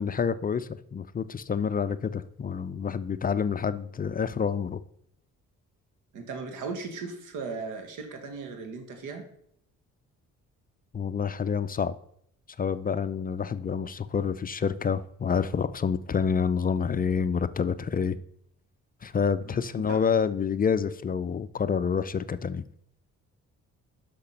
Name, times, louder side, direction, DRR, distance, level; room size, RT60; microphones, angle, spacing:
voice 1, 0.0-4.8 10.9-12.0 12.6-18.2 19.0-22.6, left 6 dB, 30° left, 0.4 m, -28 dB
voice 2, 6.1-9.2 19.4-20.0, right 4 dB, 90° right, 1.6 m, -37 dB
6.6 x 6.0 x 5.7 m
cardioid pair, 90°, 30 cm